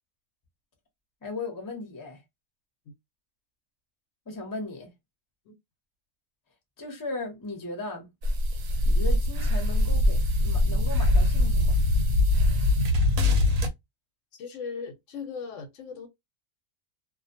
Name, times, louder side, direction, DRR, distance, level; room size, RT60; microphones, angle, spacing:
voice 1, 1.2-2.2 4.3-4.9 6.8-8.1 8.8-11.8, left 3 dB, 20° left, 0.6 m, -37 dB
sound 1, 8.2-13.7, left 1 dB, 85° right, 1.1 m, -22 dB
voice 2, 14.3-16.1, left 5 dB, 70° left, 0.9 m, -38 dB
2.4 x 2.1 x 2.6 m
omnidirectional pair, 1.4 m